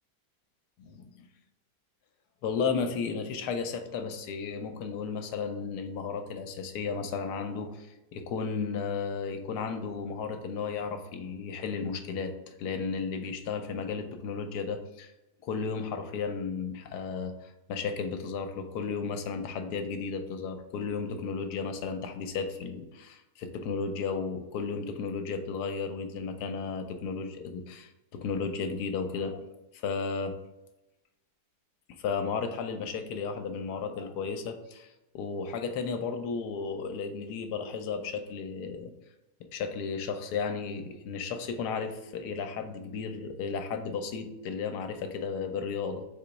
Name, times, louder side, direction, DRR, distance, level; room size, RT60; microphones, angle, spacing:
voice 1, 0.8-1.3 2.4-15.1 15.4-30.4 32.0-34.9 35.1-38.9 39.5-46.1, left 5 dB, 80° left, 6 dB, 1.1 m, -34 dB
4.0 x 2.9 x 4.6 m, 0.97 s
omnidirectional pair, 1.8 m